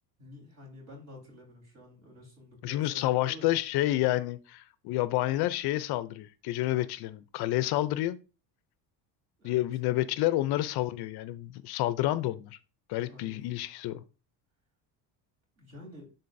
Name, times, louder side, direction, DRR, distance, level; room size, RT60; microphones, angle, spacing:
voice 1, 0.2-3.6 9.4-9.7 13.0-13.4 15.6-16.1, left 1 dB, 35° right, 3.9 m, -49 dB
voice 2, 2.6-8.2 9.4-12.6 12.9-14.0, left 15 dB, 65° left, 0.5 m, -29 dB
10.5 x 3.9 x 2.6 m
cardioid pair, 155°, 42 cm